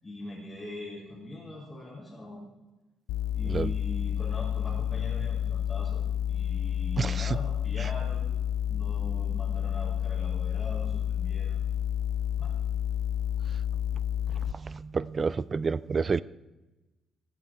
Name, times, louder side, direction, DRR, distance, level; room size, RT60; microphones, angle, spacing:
voice 1, 0.0-2.4 3.3-8.3 8.7-11.6 12.4-12.5, left 1 dB, 25° left, -7 dB, 4.5 m, -41 dB
sound 1, 3.1-14.5, left 10 dB, 65° left, 0.3 m, -30 dB
voice 2, 7.0-7.3 14.6-16.2, right 5 dB, 35° right, 20 dB, 0.4 m, -29 dB
16.5 x 8.5 x 4.5 m, 1.1 s
figure-of-eight pair, 45°, 0 cm